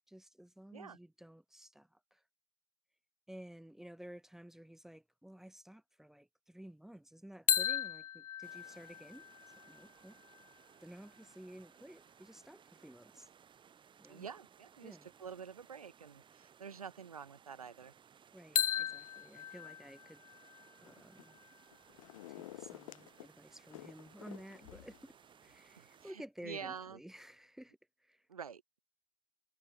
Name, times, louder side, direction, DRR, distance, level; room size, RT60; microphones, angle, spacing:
voice 1, 0.1-2.2 3.3-9.3 9.7-10.2 10.8-13.3 14.0-14.3 14.8-15.1 18.3-20.2 20.8-21.4 22.3-25.0 25.4-28.3, right 1 dB, ahead, 0.4 m, -53 dB
sound 1, 7.5-11.3 18.5-22.4, left 10 dB, 85° left, 0.4 m, -38 dB
sound 2, 8.4-26.1, right 8 dB, 25° right, 6.1 m, -63 dB
voice 2, 14.1-17.9 25.8-27.0 28.3-28.8, right 7 dB, 85° right, 1.7 m, -48 dB
sound 3, 20.8-21.4 21.7-23.3 23.7-25.1 25.5-25.6, left 15 dB, 65° left, 0.8 m, -52 dB
hypercardioid pair, 90°, 18 cm